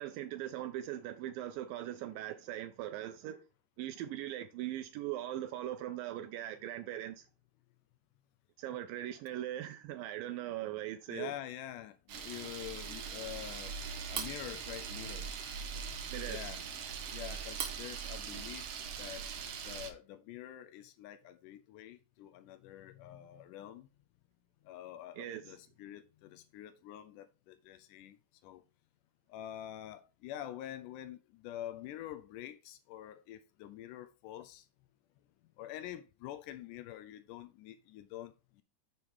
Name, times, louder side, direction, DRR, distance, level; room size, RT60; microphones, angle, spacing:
voice 1, 0.0-3.4 3.8-7.3 8.6-11.3 16.1-16.4 25.2-25.4, right 13 dB, 80° right, 2.3 m, -40 dB
voice 2, 11.1-15.4 16.2-16.6 17.1-18.7 19.0-19.3 19.7-23.9 24.6-28.2 28.4-28.6 29.3-34.7 35.6-38.6, left 12 dB, 80° left, 1.9 m, -46 dB
Camera, 12.1-19.9, right 6 dB, 65° right, 1.6 m, -41 dB
6.8 x 6.1 x 3.6 m
omnidirectional pair, 4.1 m